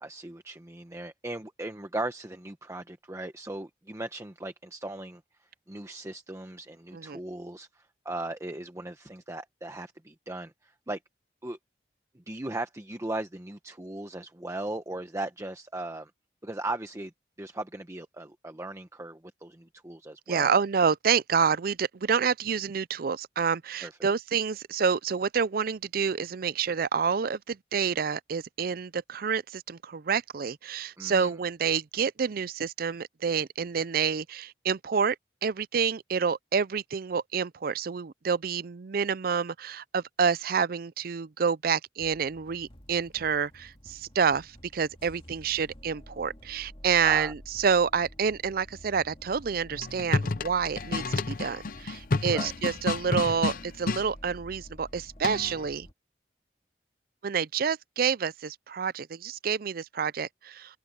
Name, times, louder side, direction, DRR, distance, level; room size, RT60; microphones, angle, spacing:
voice 1, 0.0-11.0 11.4-11.6 12.1-16.1 16.4-17.1 17.4-20.5 23.8-24.1 31.0-31.3 47.0-47.3 52.3-52.5, right 2 dB, 15° right, 0.9 m, -38 dB
voice 2, 20.3-35.2 35.4-55.9 57.2-60.8, right 6 dB, 55° right, 0.5 m, -28 dB
sound 1, 42.0-55.9, equal, 30° left, 2.2 m, -50 dB
sound 2, 49.7-54.1 55.2-55.7, left 3 dB, 50° left, 0.7 m, -30 dB
open air
head